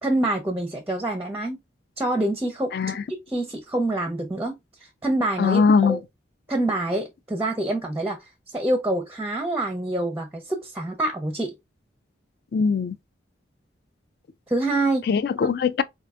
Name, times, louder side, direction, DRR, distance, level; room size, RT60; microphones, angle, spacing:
voice 1, 0.0-1.6 2.0-2.7 3.1-6.0 6.5-8.2 8.5-11.5 14.5-15.0 15.4-15.5, right 1 dB, 10° right, 0.5 m, -26 dB
voice 2, 2.7-3.0 5.4-6.0 12.5-12.9 15.1-15.8, left 5 dB, 55° left, 0.3 m, -21 dB
4.4 x 2.5 x 2.4 m
head